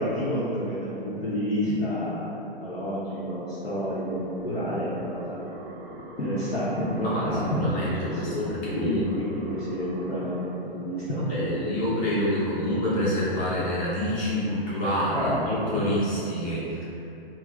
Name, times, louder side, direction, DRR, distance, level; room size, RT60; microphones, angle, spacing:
voice 1, 0.0-5.4 6.0-7.6 7.9-10.4 10.7-11.7 12.6-12.9 15.1-15.7, equal, 85° left, -11 dB, 0.8 m, -29 dB
sound 1, 3.6-10.6, right 1 dB, 45° right, 0.5 m, -42 dB
voice 2, 7.0-9.2 11.2-16.9, equal, 25° left, -8 dB, 0.9 m, -27 dB
3.4 x 2.1 x 3.2 m, 2.9 s
figure-of-eight pair, 120°, 30 cm